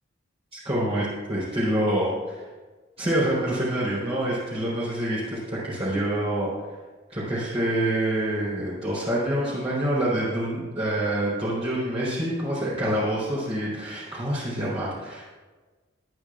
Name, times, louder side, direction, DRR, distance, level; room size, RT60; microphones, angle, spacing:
voice 1, 0.5-2.4 3.0-6.5 7.1-15.3, right 1 dB, 30° right, -9 dB, 3.9 m, -26 dB
22.5 x 9.0 x 2.5 m, 1.3 s
head